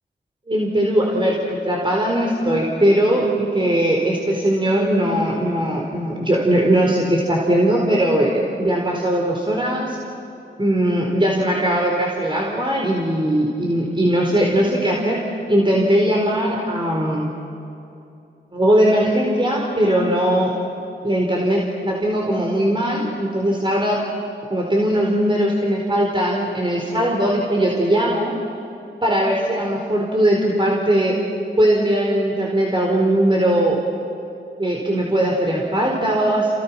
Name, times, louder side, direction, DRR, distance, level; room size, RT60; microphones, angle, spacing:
voice 1, 0.5-10.0 10.6-15.2 15.5-17.3 18.5-20.5 21.0-24.0 24.5-28.3 29.0-31.1 31.6-33.8 34.6-36.5, right 1 dB, 25° right, -2 dB, 4.6 m, -19 dB
29.0 x 28.5 x 6.1 m, 2.7 s
cardioid pair, 45°, 20 cm